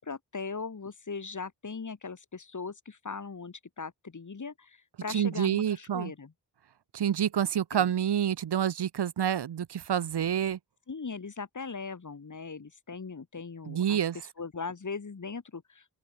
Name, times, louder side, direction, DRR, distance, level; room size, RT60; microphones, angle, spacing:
voice 1, 0.0-6.3 7.7-7.9 10.9-16.0, left 4 dB, 50° left, 6.3 m, -39 dB
voice 2, 5.1-6.1 6.9-10.6 13.6-14.2, right 9 dB, 90° right, 4.1 m, -28 dB
open air
cardioid pair, 60°, 39 cm